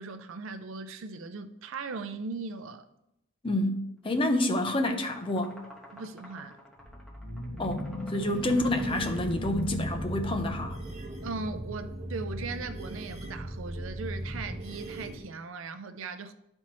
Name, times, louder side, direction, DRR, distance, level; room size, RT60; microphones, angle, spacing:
voice 1, 0.0-2.9 5.9-6.6 11.2-16.3, right 4 dB, 70° right, 0.5 m, -39 dB
voice 2, 3.4-5.6 7.6-10.8, left 1 dB, 25° left, 0.6 m, -28 dB
sound 1, 4.0-9.8, equal, ahead, 1.2 m, -52 dB
sound 2, 6.8-11.2, left 1 dB, 45° left, 1.5 m, -37 dB
sound 3, 8.7-15.2, right 1 dB, 35° right, 1.0 m, -38 dB
11.5 x 4.4 x 3.0 m
head